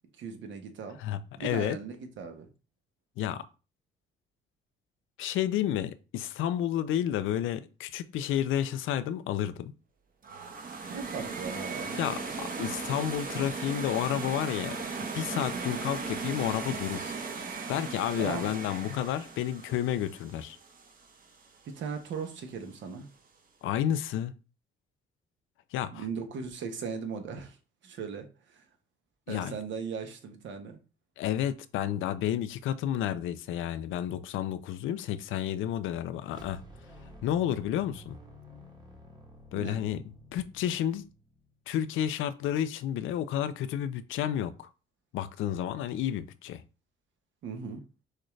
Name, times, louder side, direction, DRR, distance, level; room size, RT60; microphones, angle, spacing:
voice 1, 0.2-1.0 1.4-2.5 10.9-12.1 18.2-18.5 21.7-23.1 25.9-27.6 27.8-28.6 29.3-30.8 39.5-39.8 47.4-47.8, right 6 dB, 70° right, 1.1 m, -38 dB
voice 2, 1.0-1.8 3.2-3.4 5.2-9.7 12.0-14.8 15.1-17.2 17.7-20.6 23.6-24.3 25.7-26.0 29.3-29.5 31.2-36.6 37.2-38.2 39.5-40.0 40.3-41.0 41.7-44.7 45.1-46.6, left 11 dB, 85° left, 0.5 m, -31 dB
sound 1, 10.2-21.2, right 4 dB, 45° right, 1.0 m, -37 dB
sound 2, 36.2-41.6, equal, 20° right, 1.2 m, -51 dB
6.4 x 2.5 x 3.2 m
cardioid pair, 90°, 20 cm